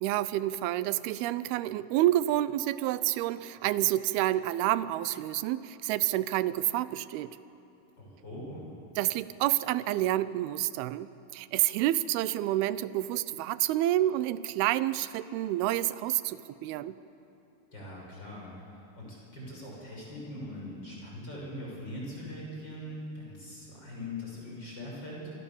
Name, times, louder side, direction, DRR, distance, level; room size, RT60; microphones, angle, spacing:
voice 1, 0.0-7.4 9.0-17.0, right 14 dB, 80° right, 15 dB, 2.5 m, -29 dB
voice 2, 8.0-8.7 17.7-18.5 19.0-25.3, left 1 dB, 25° left, -4 dB, 6.8 m, -41 dB
26.5 x 25.5 x 7.1 m, 2.9 s
omnidirectional pair, 4.7 m